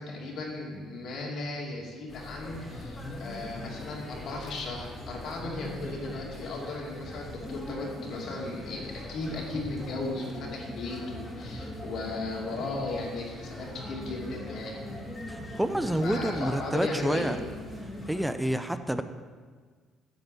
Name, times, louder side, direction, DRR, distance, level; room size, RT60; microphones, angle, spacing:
voice 1, 0.0-14.8 16.0-17.3, left 2 dB, 65° left, -2 dB, 2.5 m, -36 dB
sound 1, 2.1-18.2, left 1 dB, 15° left, 2.5 m, -41 dB
voice 2, 15.3-17.4 18.1-19.0, right 1 dB, 5° right, 10 dB, 0.6 m, -28 dB
10.5 x 5.4 x 7.7 m, 1.5 s
cardioid pair, 95°, 0 cm